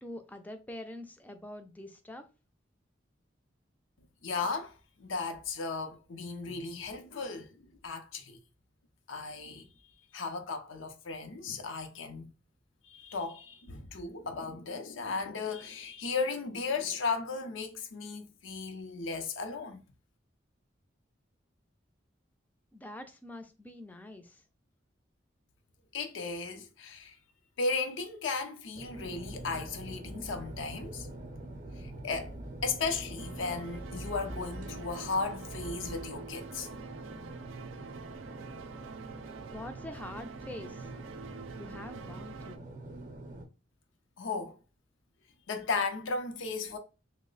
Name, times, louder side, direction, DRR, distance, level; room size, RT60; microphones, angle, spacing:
voice 1, 0.0-2.2 22.7-24.4 39.5-40.9 41.6-42.7, left 1 dB, 10° left, 0.3 m, -45 dB
voice 2, 4.2-7.6 7.8-8.4 9.1-9.7 10.1-12.3 12.8-19.8 25.9-27.2 27.6-31.1 31.8-32.4 32.6-36.7 44.2-44.6 45.5-46.8, left 4 dB, 85° left, 0.6 m, -35 dB
sound 1, 28.7-43.4, right 1 dB, 40° right, 0.6 m, -44 dB
sound 2, 33.2-42.6, right 5 dB, 85° right, 0.3 m, -47 dB
3.0 x 2.1 x 3.8 m
head